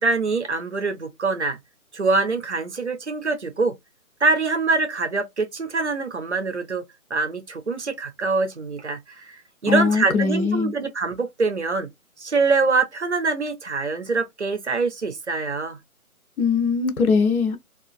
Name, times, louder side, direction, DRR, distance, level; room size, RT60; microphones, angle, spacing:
voice 1, 0.0-1.6 1.9-3.7 4.2-6.8 7.1-11.9 12.2-15.8, right 3 dB, 50° right, 0.5 m, -24 dB
voice 2, 9.7-10.7 16.4-17.6, left 5 dB, 75° left, 0.7 m, -21 dB
2.6 x 2.4 x 2.3 m
hypercardioid pair, 175°, 44 cm